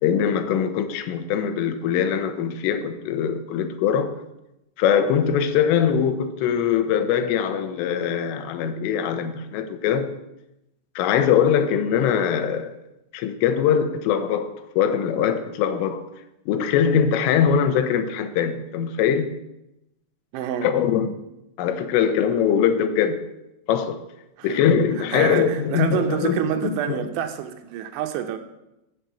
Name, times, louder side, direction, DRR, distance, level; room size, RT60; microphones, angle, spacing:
voice 1, 0.0-4.1 4.8-10.1 11.0-12.7 13.1-16.0 16.5-19.3 20.6-21.1 21.6-23.2 23.7-24.0 24.4-27.1, left 8 dB, 90° left, 3.6 m, -22 dB
voice 2, 20.3-20.7 24.4-24.6 25.1-28.4, right 9 dB, 80° right, 3.2 m, -27 dB
14.5 x 7.7 x 7.0 m
omnidirectional pair, 5.6 m